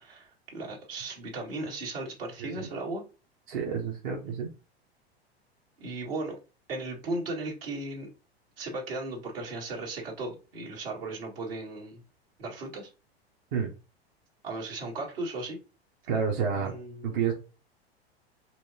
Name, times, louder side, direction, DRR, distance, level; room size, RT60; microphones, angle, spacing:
voice 1, 0.0-3.0 5.8-6.4 6.7-8.1 8.6-12.0 12.4-12.9 14.4-15.6 16.5-17.2, right 2 dB, 65° right, -2 dB, 1.9 m, -36 dB
voice 2, 3.5-4.5 13.5-13.7 16.1-16.7 17.0-17.3, right 6 dB, 45° right, -1 dB, 1.0 m, -29 dB
4.6 x 3.1 x 2.7 m, 0.31 s
figure-of-eight pair, 85°, 32 cm